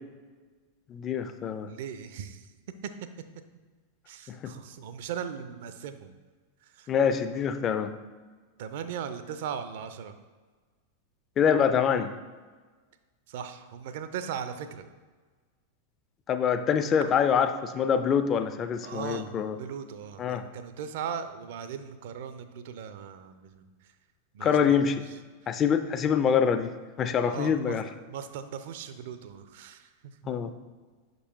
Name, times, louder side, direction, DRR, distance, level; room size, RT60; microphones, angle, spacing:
voice 1, 0.9-1.7 4.3-4.5 6.9-7.9 11.4-12.1 16.3-19.6 20.2-20.5 24.4-25.0 25.5-26.7 27.0-27.8 30.2-30.5, left 7 dB, 30° left, 10 dB, 0.4 m, -25 dB
voice 2, 1.7-2.9 4.1-6.1 6.6-6.9 8.6-10.1 13.3-14.9 18.8-23.9 24.3-24.6 24.9-25.2 27.2-27.8 28.1-30.2, right 8 dB, 55° right, 10 dB, 0.4 m, -38 dB
6.2 x 5.2 x 3.0 m, 1.4 s
figure-of-eight pair, 90°, 0 cm